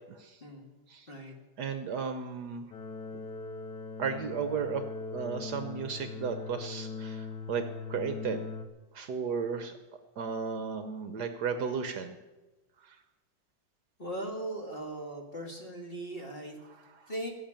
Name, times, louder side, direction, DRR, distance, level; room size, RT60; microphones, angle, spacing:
voice 1, 0.1-0.4 0.9-1.1 1.6-2.7 4.0-4.8 5.1-7.6 7.9-8.4 8.9-9.7 10.2-12.2 12.8-13.0 16.7-17.1, right 6 dB, 65° right, 9 dB, 1.2 m, -34 dB
sound 1, 2.7-8.7, left 4 dB, 85° left, 2.0 m, -40 dB
voice 2, 14.0-16.6 17.1-17.3, right 1 dB, 30° left, 2 dB, 1.9 m, -38 dB
16.0 x 7.3 x 8.8 m, 1.1 s
omnidirectional pair, 2.1 m